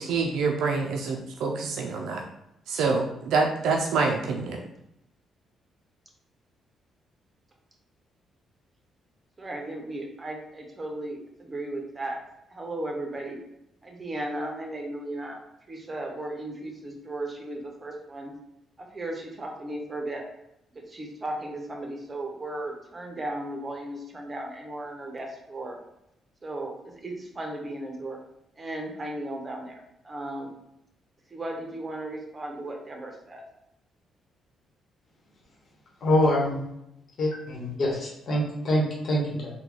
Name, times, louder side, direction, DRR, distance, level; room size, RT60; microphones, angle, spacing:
voice 1, 0.0-2.2 2.7-4.6, right 4 dB, 80° right, 2 dB, 0.4 m, -26 dB
voice 2, 9.4-12.2 12.5-13.4 13.8-15.4 15.7-18.3 18.8-20.2 20.7-25.8 26.4-28.2 28.6-30.5 31.3-33.4, right 1 dB, 25° right, 1 dB, 0.8 m, -36 dB
voice 3, 36.0-36.7 37.2-39.5, left 1 dB, 55° left, -3 dB, 1.1 m, -25 dB
3.7 x 2.2 x 3.0 m, 0.82 s
cardioid pair, 90°, 0 cm